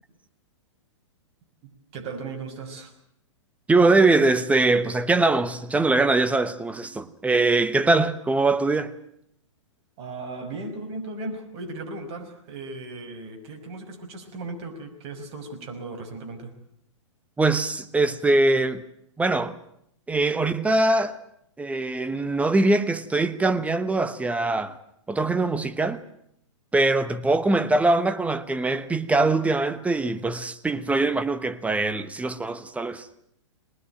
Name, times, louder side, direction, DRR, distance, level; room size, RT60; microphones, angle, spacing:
voice 1, 1.6-2.9 10.0-16.5, right 3 dB, 40° right, 5.7 m, -37 dB
voice 2, 3.7-8.9 17.4-18.8 19.2-19.6 20.1-21.2 21.6-24.8 25.1-26.0 26.7-33.1, right 2 dB, 10° right, 1.0 m, -22 dB
22.0 x 20.0 x 9.1 m
hypercardioid pair, 120°, 16 cm